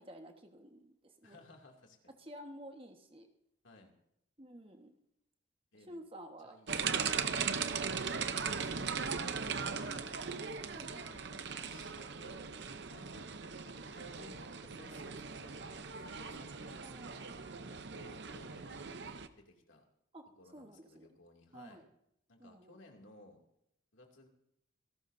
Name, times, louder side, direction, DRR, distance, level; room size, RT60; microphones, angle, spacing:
voice 1, 0.0-1.4 2.2-3.3 4.4-5.0 5.9-6.6 7.4-7.6 10.7-11.2 16.8-17.4 20.1-20.3 20.5-21.1 21.5-21.8 22.4-22.8, equal, 25° right, 4 dB, 1.4 m, -52 dB
voice 2, 1.2-2.1 3.6-3.9 5.7-6.0 6.4-10.4 10.9-12.4 12.9-16.8 17.7-18.8 19.4-19.9 20.4-21.8 22.3-23.4 23.9-24.3, left 2 dB, 75° left, 2 dB, 2.6 m, -59 dB
sound 1, 6.7-19.3, right 6 dB, 60° right, 0.8 m, -39 dB
27.0 x 12.0 x 2.7 m, 0.77 s
head